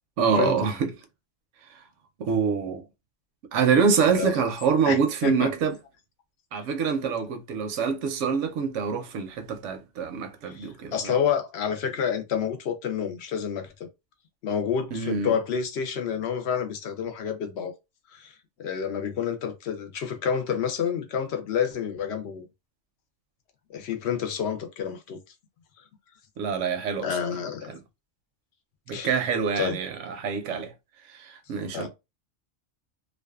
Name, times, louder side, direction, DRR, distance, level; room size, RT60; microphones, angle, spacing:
voice 1, 0.2-0.9 2.2-2.9 3.5-5.8 6.5-11.1 14.9-15.3 26.4-27.1 27.7-27.8 28.9-30.7 31.1-31.9, right 6 dB, 85° right, 0.9 m, -25 dB
voice 2, 4.9-5.5 10.4-13.7 14.4-17.7 18.1-18.3 18.6-22.5 23.7-25.2 27.0-27.7 28.9-29.1 29.6-29.8 31.7-31.9, left 7 dB, 70° left, 0.8 m, -29 dB
2.5 x 2.3 x 2.3 m
omnidirectional pair, 1.2 m